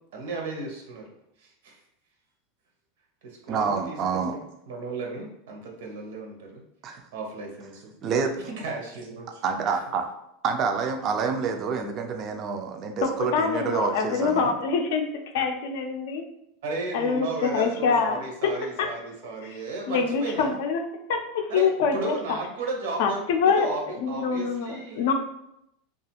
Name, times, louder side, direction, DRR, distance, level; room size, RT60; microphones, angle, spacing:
voice 1, 0.1-1.1 1.4-1.8 3.2-4.4 4.7-6.6 7.1-7.9 8.4-9.4 16.6-20.6 21.5-23.2 23.6-25.1, right 3 dB, 75° right, 1 dB, 0.7 m, -35 dB
voice 2, 3.5-4.3 6.8-7.0 8.0-8.4 9.4-10.1 10.4-14.6, right 5 dB, 35° right, 5 dB, 0.3 m, -27 dB
voice 3, 13.0-15.1 15.3-16.2 16.9-17.3 17.5-18.5 18.8-18.9 19.5-19.6 19.9-20.8 21.1-22.2 23.0-23.7 24.0-25.1, left 5 dB, 70° left, 5 dB, 0.4 m, -25 dB
2.4 x 2.3 x 2.8 m, 0.79 s
supercardioid pair, 155°, 0 cm